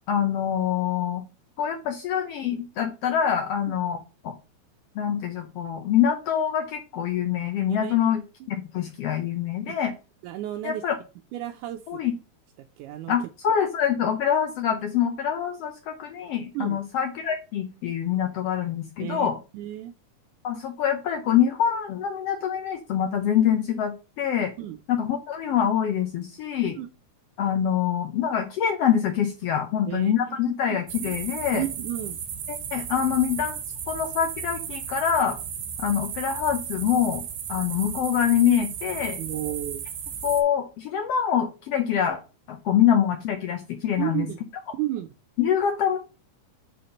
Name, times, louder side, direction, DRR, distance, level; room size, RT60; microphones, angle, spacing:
voice 1, 0.1-1.2 1.6-4.3 4.9-8.2 8.5-9.9 10.6-10.9 11.9-12.1 13.1-19.4 20.4-24.5 24.9-26.8 27.4-31.6 32.5-33.6 33.9-35.4 35.8-37.2 37.5-39.2 40.2-42.2 42.5-44.3 45.4-46.0, left 9 dB, 75° left, 6 dB, 1.4 m, -25 dB
voice 2, 10.2-10.8 11.3-12.0 12.8-13.1 16.5-16.8 19.0-19.9 24.6-24.8 26.8-26.9 29.9-30.4 30.7-31.2 31.5-32.2 39.2-39.8 44.0-44.4 44.7-45.1, right 14 dB, 80° right, 5 dB, 2.0 m, -32 dB
sound 1, 30.9-40.4, right 8 dB, 65° right, 2.0 m, -35 dB
5.6 x 4.3 x 5.2 m, 0.30 s
omnidirectional pair, 3.6 m